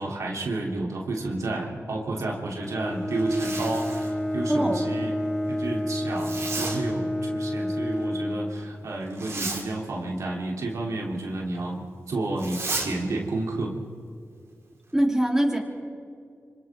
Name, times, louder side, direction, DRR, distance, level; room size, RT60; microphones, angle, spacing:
voice 1, 0.0-5.1 5.5-13.8, right 2 dB, 85° right, -2 dB, 3.1 m, -31 dB
Bowed string instrument, 2.5-9.2, left 1 dB, 15° left, 4.5 m, -30 dB
Zipper (clothing), 3.1-4.2 6.2-6.8 9.1-9.7 12.4-12.9, right 3 dB, 60° right, 4.3 m, -33 dB
voice 2, 4.5-4.8 14.9-15.6, right 1 dB, 10° right, 0 dB, 3.4 m, -22 dB
27.0 x 26.5 x 3.7 m, 2.4 s
cardioid pair, 65°, 5 cm